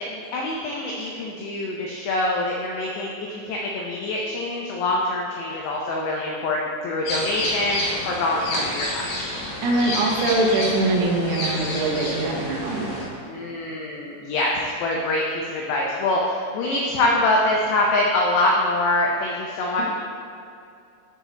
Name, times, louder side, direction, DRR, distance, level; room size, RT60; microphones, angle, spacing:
voice 1, 0.1-9.1 13.3-19.8, left 2 dB, 90° left, -2 dB, 2.4 m, -24 dB
sound 1, 7.1-13.0, left 1 dB, 75° left, 4.2 m, -29 dB
voice 2, 9.6-12.9, right 2 dB, 90° right, -1 dB, 3.7 m, -22 dB
11.0 x 4.4 x 4.0 m, 2.5 s
omnidirectional pair, 5.8 m